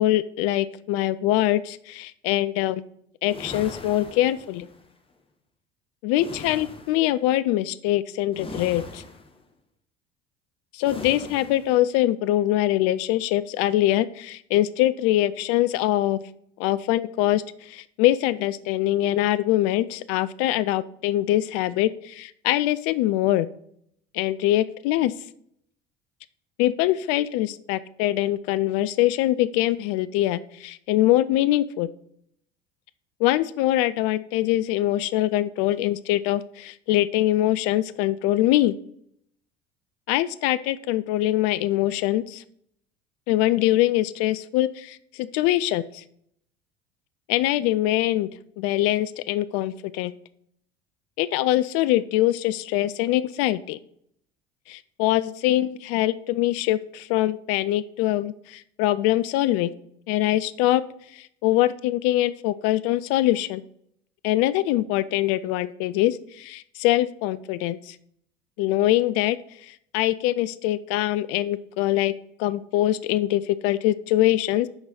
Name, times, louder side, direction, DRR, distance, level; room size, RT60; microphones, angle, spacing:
voice 1, 0.0-2.8 3.2-4.7 6.0-9.0 10.7-16.2 16.6-23.5 24.1-25.1 26.6-31.9 33.2-38.7 40.1-42.4 43.3-46.0 47.3-48.3 48.6-50.1 51.2-53.8 54.7-59.7 60.1-60.8 61.1-63.6 64.2-68.0 68.6-69.4 69.6-72.1 72.4-74.7, left 14 dB, 50° left, 16 dB, 0.4 m, -23 dB
sound 1, 3.2-4.8 6.1-7.1 8.3-9.4 10.8-11.8, left 3 dB, 15° left, 1.1 m, -40 dB
6.3 x 4.7 x 5.5 m, 0.69 s
figure-of-eight pair, 65°, 31 cm